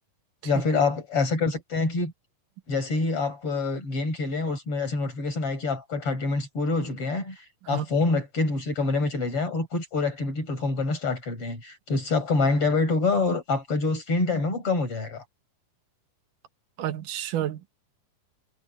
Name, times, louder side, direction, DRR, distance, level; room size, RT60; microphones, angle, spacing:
voice 1, 0.4-2.1 2.7-7.4 7.7-15.2, left 3 dB, 45° left, 6.8 m, -26 dB
voice 2, 16.8-17.7, right 11 dB, 85° right, 2.8 m, -30 dB
omnidirectional pair, 3.6 m